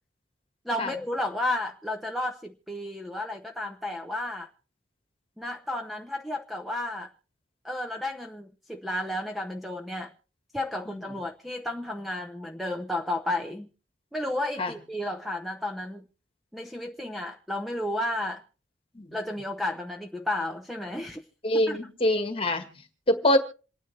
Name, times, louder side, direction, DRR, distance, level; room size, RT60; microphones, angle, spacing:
voice 1, 0.7-4.5 5.4-7.1 7.6-10.1 10.5-13.7 14.1-16.0 16.5-18.4 19.1-21.2 21.5-21.8, left 1 dB, ahead, 0.7 m, -32 dB
voice 2, 21.4-22.6 23.1-23.4, left 1 dB, 30° left, 1.6 m, -24 dB
27.5 x 9.7 x 3.3 m
head